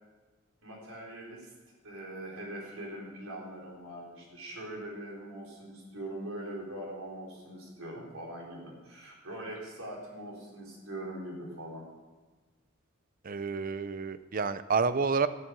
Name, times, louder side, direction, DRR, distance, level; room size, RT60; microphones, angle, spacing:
voice 1, 0.6-11.8, right 1 dB, 90° right, -2 dB, 4.1 m, -42 dB
voice 2, 13.2-15.3, right 5 dB, 40° right, 13 dB, 0.6 m, -29 dB
14.0 x 7.6 x 7.0 m, 1.2 s
head